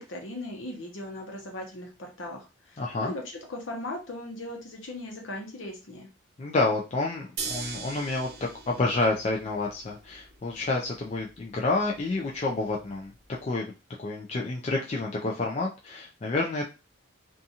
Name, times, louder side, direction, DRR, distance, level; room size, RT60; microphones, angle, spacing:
voice 1, 0.0-3.2 3.5-6.1, left 1 dB, 70° left, 1 dB, 0.8 m, -38 dB
voice 2, 2.8-3.1 6.4-8.3 8.7-13.1 13.4-13.7 14.0-16.6, left 2 dB, 30° left, -1 dB, 0.3 m, -29 dB
sound 1, 7.4-13.4, right 5 dB, 50° right, 0.5 m, -42 dB
2.6 x 2.4 x 2.7 m, 0.30 s
head